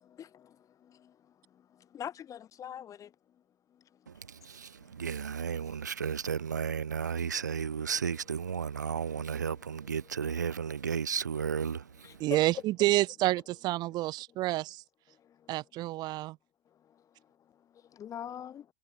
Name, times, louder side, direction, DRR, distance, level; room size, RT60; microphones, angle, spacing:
voice 1, 0.2-3.2 3.7-4.9 5.3-5.8 8.6-10.9 12.0-12.4 15.1-15.5 16.7-18.7, left 9 dB, 35° left, 5.7 m, -47 dB
voice 2, 4.4-11.8, right 7 dB, 80° right, 0.9 m, -33 dB
voice 3, 12.2-14.8 15.5-16.4, right 17 dB, 50° right, 1.5 m, -29 dB
figure-of-eight pair, 70°, 9 cm